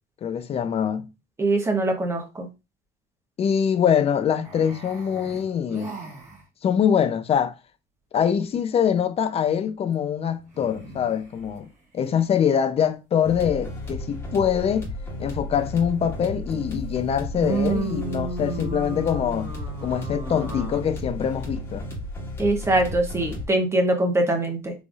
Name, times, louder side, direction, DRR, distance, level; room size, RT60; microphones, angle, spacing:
voice 1, 0.2-1.1 3.4-5.9 6.6-7.5 8.1-11.7 11.9-14.9 15.2-19.5 19.8-21.9, left 8 dB, 30° left, 0.4 m, -24 dB
voice 2, 1.4-2.5 22.4-24.7, right 2 dB, 15° right, 0.9 m, -23 dB
sound 1, 4.4-6.4 10.5-11.5 16.5-16.6 17.4-20.8, right 4 dB, 35° right, 1.9 m, -33 dB
sound 2, 13.2-23.5, left 1 dB, 10° left, 1.5 m, -34 dB
4.0 x 3.2 x 2.3 m
cardioid pair, 135°, 20 cm